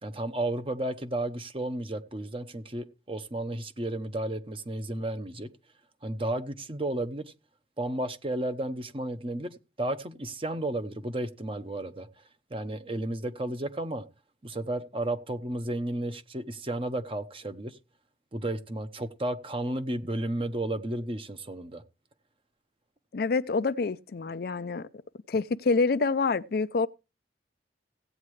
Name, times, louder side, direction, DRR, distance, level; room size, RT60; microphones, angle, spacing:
voice 1, 0.0-5.5 6.0-7.2 7.8-12.1 12.5-14.1 14.4-17.8 18.3-21.8, right 1 dB, 30° right, 0.9 m, -33 dB
voice 2, 23.1-24.9 25.3-26.9, left 4 dB, 60° left, 0.5 m, -27 dB
16.5 x 8.6 x 3.2 m
head